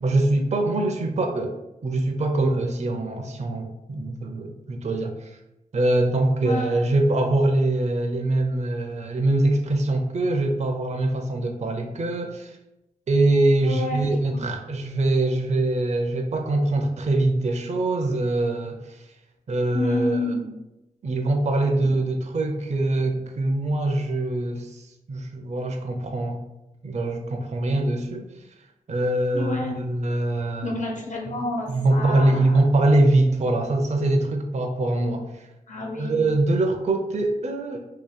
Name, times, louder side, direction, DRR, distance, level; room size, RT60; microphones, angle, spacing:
voice 1, 0.0-1.6 1.8-5.4 5.7-12.5 13.1-19.0 19.5-20.2 21.0-26.4 26.8-28.2 28.9-30.7 31.3-31.4 31.7-35.5 36.0-37.8, right 2 dB, 50° right, 4 dB, 0.5 m, -23 dB
voice 2, 13.6-14.4 19.7-20.4 21.8-21.9 29.3-29.8 30.6-32.6 35.7-36.2, left 2 dB, 55° left, -1 dB, 1.0 m, -29 dB
2.8 x 2.8 x 4.0 m, 0.94 s
cardioid pair, 50°, 15 cm